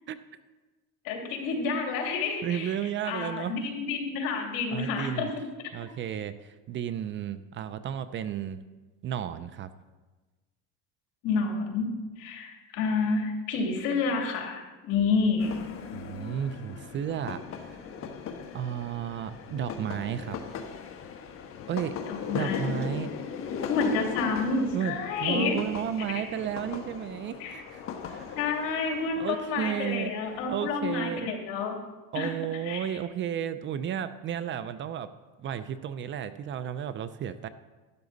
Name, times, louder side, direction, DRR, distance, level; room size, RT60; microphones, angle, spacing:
voice 1, 1.0-2.8 3.0-5.3 11.2-11.9 12.2-15.5 22.1-22.8 23.7-25.5 27.4-27.6 28.4-31.8 32.1-32.3 32.6-32.8, left 4 dB, 70° left, 1 dB, 2.7 m, -29 dB
voice 2, 2.4-3.6 4.7-5.3 5.7-8.6 9.0-9.7 15.9-17.8 18.5-20.4 21.7-21.9 22.3-23.1 24.7-28.4 29.2-30.1 30.5-31.3 32.1-35.1 35.4-37.5, right 9 dB, 35° right, 13 dB, 0.5 m, -33 dB
sound 1, 15.4-30.9, left 6 dB, 40° left, 1.3 m, -38 dB
12.0 x 11.5 x 4.0 m, 1.2 s
cardioid pair, 130°, 32 cm